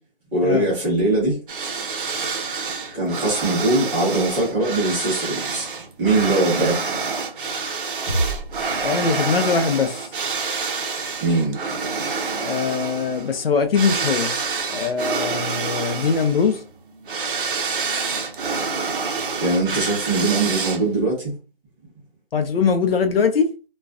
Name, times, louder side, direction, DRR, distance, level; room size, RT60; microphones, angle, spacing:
voice 1, 0.3-1.4 2.9-5.7 6.0-6.8 11.2-11.6 19.4-21.3, right 2 dB, 10° right, 0.7 m, -21 dB
sound 1, 1.5-21.1, right 4 dB, 60° right, 0.6 m, -27 dB
sound 2, 8.1-9.8, right 2 dB, 35° right, 1.0 m, -28 dB
voice 2, 8.8-10.0 12.4-14.4 14.7-16.6 22.3-23.5, left 5 dB, 70° left, 0.6 m, -21 dB
2.3 x 2.2 x 2.4 m
hypercardioid pair, 155°, 30 cm